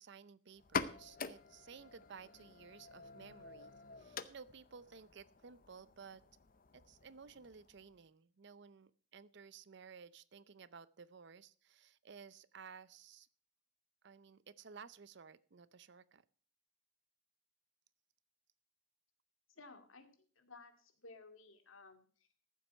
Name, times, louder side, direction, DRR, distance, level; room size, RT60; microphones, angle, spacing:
voice 1, 0.0-6.2 6.7-13.3 14.0-16.2, right 5 dB, 60° right, 18 dB, 0.6 m, -56 dB
sound 1, 0.6-8.0, left 5 dB, 45° left, 0.7 m, -46 dB
voice 2, 19.6-20.1 20.4-22.1, left 3 dB, 90° left, 6 dB, 2.2 m, -56 dB
14.5 x 7.6 x 5.5 m, 0.43 s
head